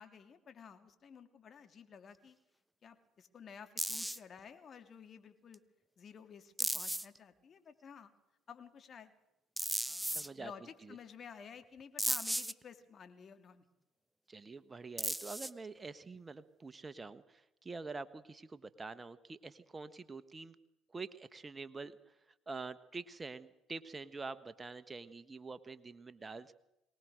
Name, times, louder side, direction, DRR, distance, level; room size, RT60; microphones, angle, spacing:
voice 1, 0.0-2.4 2.8-5.6 6.0-8.1 8.5-9.1 9.9-13.6, left 7 dB, 45° left, 8 dB, 2.9 m, -53 dB
sound 1, 3.8-4.2 5.5-5.6 6.6-7.2 9.6-10.3 12.0-12.5 15.0-15.7, right 1 dB, 5° right, 0.9 m, -35 dB
voice 2, 10.1-10.5 10.8-11.0 14.3-20.5 20.9-26.5, right 4 dB, 25° right, 14 dB, 1.2 m, -46 dB
23.5 x 19.0 x 6.4 m, 0.88 s
hypercardioid pair, 55°, 0 cm